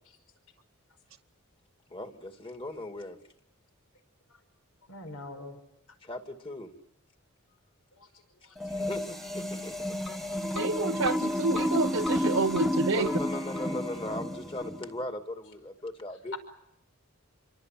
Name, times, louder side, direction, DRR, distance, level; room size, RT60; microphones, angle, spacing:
voice 1, 1.9-3.2 6.0-6.7 8.7-10.0 12.9-16.4, left 1 dB, 25° left, 5 dB, 2.5 m, -38 dB
voice 2, 4.9-5.6 8.0-8.1 8.4-8.6, left 2 dB, 80° left, 7 dB, 5.4 m, -44 dB
sound 1, 8.6-14.9, left 1 dB, ahead, 1.5 m, -31 dB
voice 3, 10.5-13.1, right 3 dB, 65° right, 5 dB, 0.9 m, -28 dB
28.5 x 24.0 x 7.7 m, 0.84 s
head